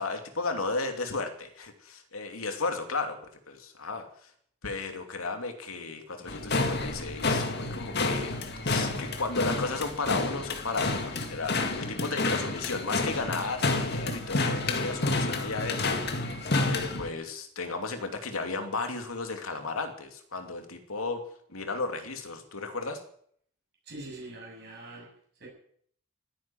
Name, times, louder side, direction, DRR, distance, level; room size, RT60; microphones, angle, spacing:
voice 1, 0.0-3.2 3.5-4.3 4.6-16.3 16.7-21.2 21.5-23.0, left 3 dB, 80° left, 5 dB, 2.8 m, -34 dB
sound 1, 6.3-17.1, left 3 dB, 50° left, 2.0 m, -30 dB
voice 2, 23.8-25.5, right 2 dB, 50° right, -2 dB, 7.2 m, -44 dB
15.5 x 10.0 x 9.3 m, 0.62 s
head